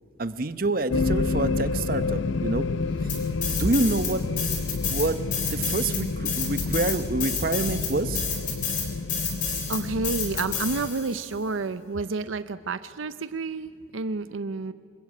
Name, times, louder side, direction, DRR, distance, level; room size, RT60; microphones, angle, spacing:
voice 1, 0.2-2.7 3.5-4.2 4.9-5.2 5.5-8.2, right 2 dB, 45° right, 12 dB, 0.9 m, -27 dB
sound 1, 0.9-10.9, left 4 dB, 70° left, 0.6 m, -29 dB
sound 2, 3.1-4.1 4.4-11.2, left 6 dB, 40° left, 3.7 m, -30 dB
voice 2, 9.7-14.7, right 3 dB, 80° right, 12 dB, 0.7 m, -30 dB
25.5 x 22.0 x 8.5 m, 2.5 s
head